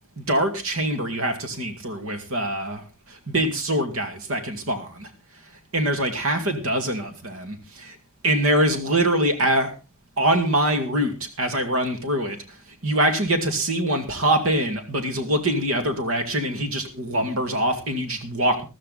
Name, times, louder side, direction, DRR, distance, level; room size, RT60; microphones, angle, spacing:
voice 1, 0.2-5.1 5.7-8.0 8.2-9.7 10.2-12.6 12.8-18.7, right 1 dB, 65° right, 7 dB, 2.3 m, -24 dB
14.0 x 13.0 x 4.1 m, 0.31 s
head